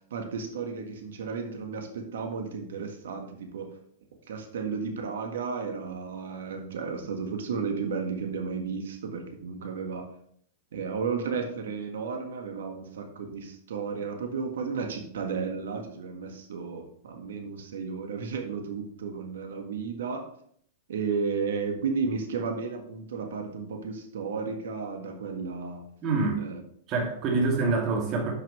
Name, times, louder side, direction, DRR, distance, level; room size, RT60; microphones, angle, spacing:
voice 1, 0.0-3.7 4.3-10.1 10.7-20.3 20.9-25.8 26.4-26.6 27.2-27.3, right 5 dB, 75° right, 4 dB, 1.6 m, -33 dB
voice 2, 26.0-26.4 26.9-28.3, right 3 dB, 40° right, 1 dB, 2.5 m, -26 dB
9.8 x 6.2 x 3.3 m, 0.64 s
hypercardioid pair, 105°, 0 cm